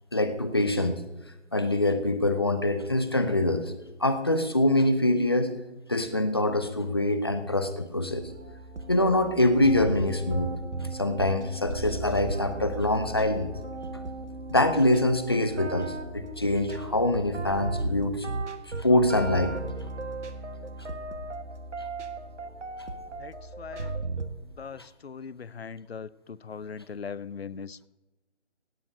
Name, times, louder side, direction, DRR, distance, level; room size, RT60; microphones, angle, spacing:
voice 1, 0.1-1.0 1.5-3.7 4.0-5.5 5.9-8.3 8.9-10.5 10.9-13.5 14.5-18.3 18.8-19.6, left 1 dB, 20° left, 10 dB, 0.6 m, -24 dB
sound 1, 8.1-24.3, right 3 dB, 75° right, 1.7 m, -36 dB
voice 2, 23.2-23.9 24.6-27.9, left 6 dB, 60° left, 21 dB, 0.6 m, -40 dB
17.0 x 8.9 x 5.0 m, 1.0 s
figure-of-eight pair, 160°, 35 cm